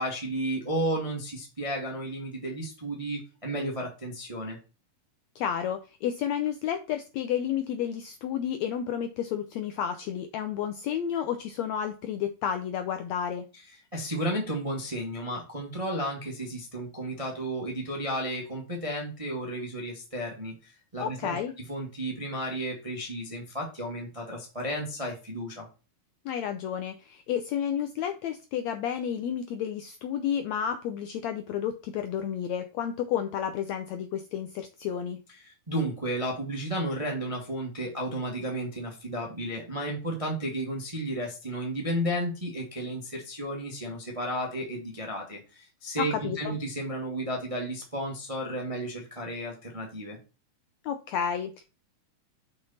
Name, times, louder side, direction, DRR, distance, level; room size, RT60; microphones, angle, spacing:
voice 1, 0.0-4.6 13.9-21.4 21.7-25.7 35.4-50.2, right 1 dB, 25° right, 0 dB, 0.8 m, -33 dB
voice 2, 5.3-13.4 21.0-21.5 26.2-35.2 46.0-46.5 50.8-51.6, left 9 dB, 80° left, 8 dB, 1.6 m, -31 dB
5.9 x 5.6 x 4.1 m, 0.32 s
omnidirectional pair, 3.8 m